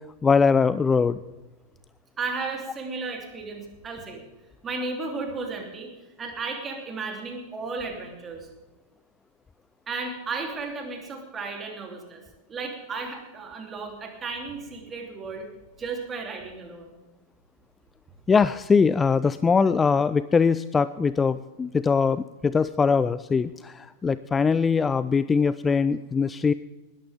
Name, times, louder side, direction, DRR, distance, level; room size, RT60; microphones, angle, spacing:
voice 1, 0.2-1.2 18.3-26.5, left 5 dB, 15° left, 16 dB, 0.4 m, -22 dB
voice 2, 2.2-4.2 4.6-5.9 6.2-8.5 9.9-12.2 12.5-15.5 15.8-17.0, right 4 dB, 20° right, 2 dB, 3.3 m, -34 dB
19.5 x 13.5 x 3.7 m, 1.2 s
figure-of-eight pair, 90°, 0 cm